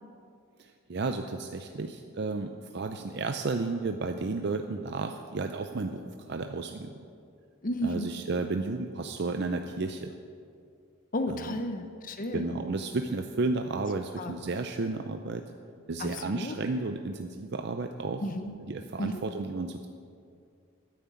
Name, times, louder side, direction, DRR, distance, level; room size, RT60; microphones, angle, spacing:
voice 1, 0.6-6.9 7.8-10.2 11.3-11.6 12.3-15.5 15.9-18.2 18.7-19.9, right 3 dB, 50° right, 6 dB, 0.5 m, -32 dB
voice 2, 7.6-8.1 11.1-12.6 14.2-14.3 16.0-16.6 18.2-18.5 19.0-19.2, left 1 dB, 40° left, 7 dB, 0.7 m, -33 dB
10.5 x 9.3 x 8.2 m, 2.3 s
head